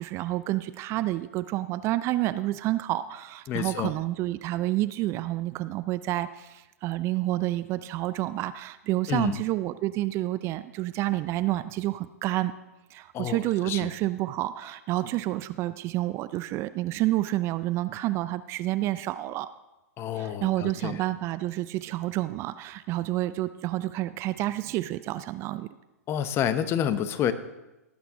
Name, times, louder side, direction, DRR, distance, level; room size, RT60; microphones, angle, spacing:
voice 1, 0.0-12.5 12.9-19.5 20.2-25.7, right 16 dB, 30° right, 14 dB, 0.4 m, -29 dB
voice 2, 3.5-3.9 9.1-9.4 13.1-13.9 20.0-21.0 26.1-27.3, left 9 dB, 30° left, 12 dB, 0.8 m, -29 dB
18.5 x 8.1 x 3.7 m, 1.0 s
figure-of-eight pair, 110°, 9 cm